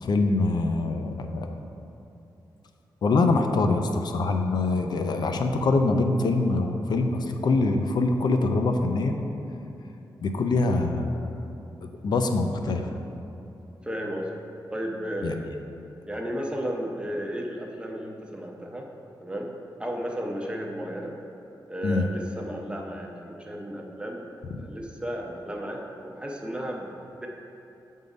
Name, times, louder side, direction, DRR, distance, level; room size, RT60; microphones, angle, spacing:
voice 1, 0.0-1.5 3.0-9.2 10.2-11.3 11.8-12.9 15.2-15.4 21.8-22.1 24.5-24.6, left 3 dB, 60° left, 5 dB, 0.5 m, -24 dB
voice 2, 13.8-14.4 14.7-15.6 16.1-18.9 19.2-19.5 19.8-21.2 21.7-26.9 27.2-27.3, equal, 10° right, 0 dB, 0.6 m, -33 dB
7.9 x 3.7 x 5.2 m, 2.9 s
wide cardioid pair, 130°, 8 cm